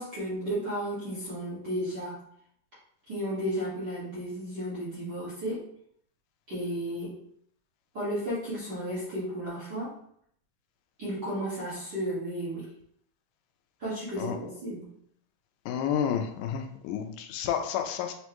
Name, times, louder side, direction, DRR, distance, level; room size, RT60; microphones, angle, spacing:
voice 1, 0.0-2.2 3.1-5.6 6.5-7.2 7.9-9.9 11.0-12.7 13.8-14.9, equal, 50° right, -10 dB, 1.3 m, -33 dB
voice 2, 15.7-18.1, left 8 dB, 85° left, 5 dB, 2.1 m, -30 dB
6.2 x 2.2 x 2.9 m, 0.67 s
omnidirectional pair, 3.6 m